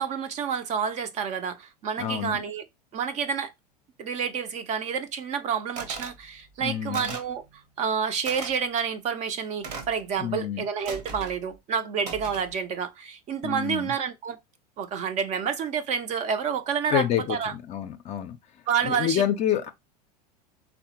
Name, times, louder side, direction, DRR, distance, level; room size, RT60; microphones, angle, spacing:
voice 1, 0.0-2.6 2.9-3.5 4.0-7.4 7.8-14.4 14.8-17.5 18.7-19.2, right 7 dB, 35° right, 0.4 m, -29 dB
voice 2, 2.0-2.4 6.6-7.1 10.2-10.6 13.4-13.9 16.9-18.4 18.8-19.7, left 10 dB, 35° left, 0.4 m, -28 dB
sound 1, 5.8-6.2 6.9-7.3 8.3-8.5 9.6-10.0 10.9-11.4 12.0-12.5, right 4 dB, 75° right, 1.0 m, -37 dB
3.5 x 2.1 x 2.7 m
hypercardioid pair, 85°, 21 cm